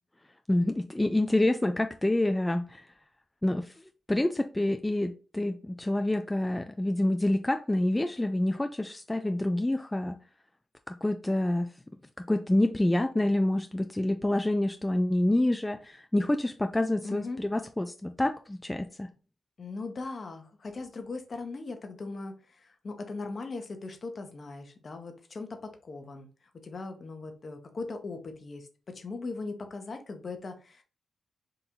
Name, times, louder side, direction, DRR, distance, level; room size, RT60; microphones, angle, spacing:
voice 1, 0.5-2.8 3.4-3.7 4.1-10.2 10.9-11.7 12.2-19.1, left 1 dB, 15° left, 0.4 m, -27 dB
voice 2, 17.0-17.4 19.6-26.3 26.6-30.8, left 3 dB, 50° left, 1.0 m, -39 dB
3.8 x 2.6 x 4.4 m
cardioid pair, 70°, 0 cm